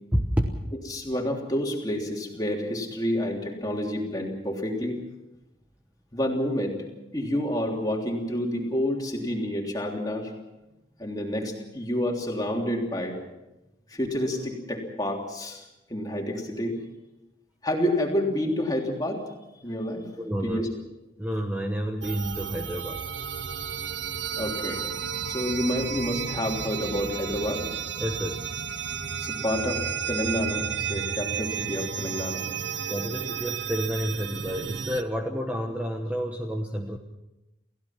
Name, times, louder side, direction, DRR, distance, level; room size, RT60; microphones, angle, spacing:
voice 1, 0.1-0.6 20.2-20.6 21.2-23.0 28.0-28.5 32.9-37.0, equal, 10° right, 2 dB, 1.1 m, -29 dB
voice 2, 0.9-5.0 6.1-6.8 7.1-10.3 11.0-13.2 13.9-15.6 15.9-16.8 17.6-19.2 19.6-20.1 20.4-20.7 24.4-24.8 25.2-27.6 29.2-32.4, left 1 dB, 20° left, 0 dB, 3.3 m, -29 dB
sound 1, 22.0-35.0, right 7 dB, 75° right, 0.9 m, -32 dB
29.0 x 16.0 x 6.0 m, 0.96 s
head